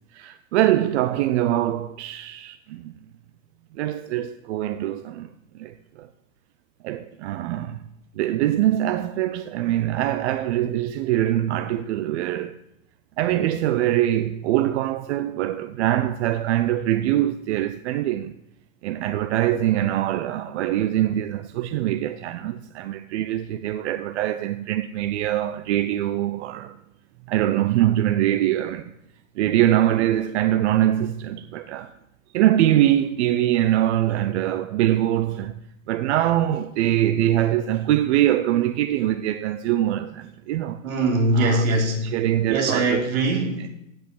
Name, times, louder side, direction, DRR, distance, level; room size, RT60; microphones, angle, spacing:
voice 1, 0.1-2.9 3.7-6.1 6.8-7.9 8.2-12.6 13.2-18.3 18.8-26.8 27.3-28.9 29.4-31.9 32.3-35.5 35.9-40.8 41.3-41.6 42.0-43.1 43.6-43.7, right 13 dB, 55° right, 0.7 m, -23 dB
voice 2, 40.8-42.1 42.5-43.7, right 2 dB, 75° right, 4.1 m, -22 dB
16.0 x 6.2 x 8.4 m
hypercardioid pair, 140°, 42 cm